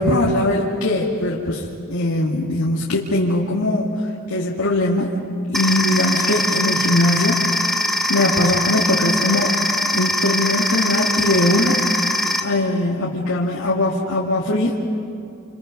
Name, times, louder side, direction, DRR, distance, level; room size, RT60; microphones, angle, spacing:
voice 1, 0.0-3.9 4.3-5.1 5.5-7.3 8.1-9.5 9.9-11.8 12.4-14.8, left 1 dB, 80° left, -3 dB, 2.3 m, -20 dB
sound 1, 5.5-12.4, left 1 dB, ahead, 1.3 m, -22 dB
29.0 x 28.5 x 5.3 m, 2.6 s
head